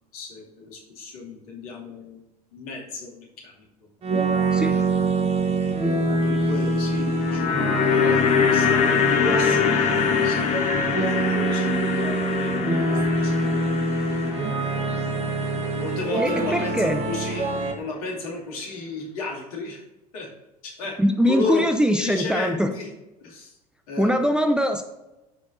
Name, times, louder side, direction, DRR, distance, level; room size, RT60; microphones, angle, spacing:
voice 1, 0.1-2.2 2.5-3.6 4.7-5.2 6.0-14.0 15.1-15.3 15.7-19.8 20.1-20.3 20.6-22.9 23.2-23.6 23.9-24.1, left 3 dB, 65° left, -2 dB, 2.5 m, -34 dB
sound 1, 4.0-17.7, right 3 dB, 30° right, 1.4 m, -25 dB
sound 2, 6.9-17.2 17.5-17.6, left 7 dB, 35° left, 1.0 m, -24 dB
voice 2, 16.2-17.0 21.0-22.7 24.0-24.8, equal, 5° right, 6 dB, 0.6 m, -22 dB
13.0 x 5.2 x 2.7 m, 1.0 s
figure-of-eight pair, 75°, 20 cm